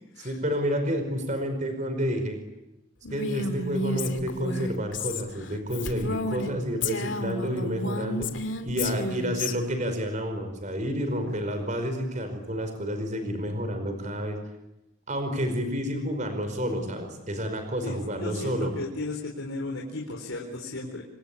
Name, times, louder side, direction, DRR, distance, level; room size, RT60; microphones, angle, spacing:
voice 1, 0.2-2.4 3.1-8.3 8.6-14.4 15.1-18.7, equal, 35° right, 7 dB, 5.1 m, -29 dB
Female speech woman speaking, 3.0-6.5 6.8-9.5, left 2 dB, 65° left, 2.5 m, -31 dB
voice 2, 17.8-21.0, left 2 dB, 80° left, 1 dB, 4.3 m, -35 dB
27.5 x 25.0 x 8.6 m, 0.93 s
head